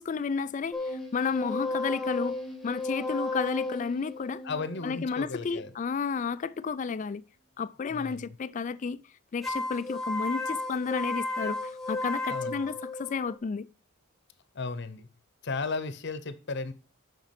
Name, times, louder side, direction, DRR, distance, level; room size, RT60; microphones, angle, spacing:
voice 1, 0.0-2.4 2.6-4.4 4.8-7.2 7.6-9.0 9.3-13.7, left 5 dB, 35° left, 0.3 m, -32 dB
sound 1, 0.7-6.1 9.4-13.4, left 2 dB, ahead, 1.3 m, -34 dB
voice 2, 4.4-5.7 7.9-8.2 12.3-12.7 14.5-15.1 15.4-16.7, left 3 dB, 55° left, 0.8 m, -35 dB
7.5 x 5.9 x 5.8 m
head